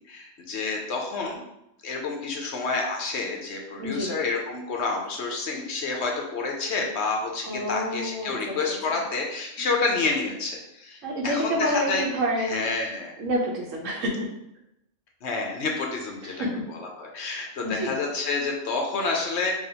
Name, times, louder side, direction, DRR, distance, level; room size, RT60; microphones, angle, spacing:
voice 1, 0.1-1.4 1.8-12.0 12.5-13.1 15.2-16.5 17.0-19.5, left 3 dB, 65° left, 1 dB, 0.9 m, -29 dB
voice 2, 3.8-4.1 7.4-8.6 8.9-9.0 11.0-12.6 13.2-14.3 16.2-16.5 17.2-18.0, equal, 80° right, -1 dB, 1.2 m, -28 dB
4.8 x 2.4 x 2.8 m, 0.83 s
omnidirectional pair, 1.3 m